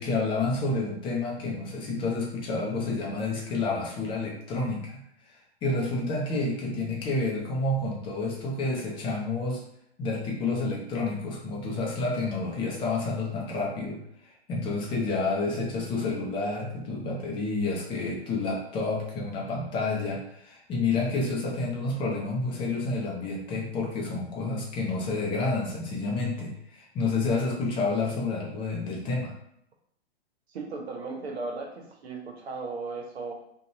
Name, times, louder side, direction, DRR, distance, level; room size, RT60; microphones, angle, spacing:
voice 1, 0.0-5.0 5.6-9.6 10.0-14.0 14.5-29.3, left 3 dB, 15° left, -2 dB, 0.5 m, -29 dB
voice 2, 30.5-33.3, right 3 dB, 75° right, 1 dB, 0.8 m, -36 dB
2.5 x 2.2 x 2.8 m, 0.72 s
hypercardioid pair, 120°, 32 cm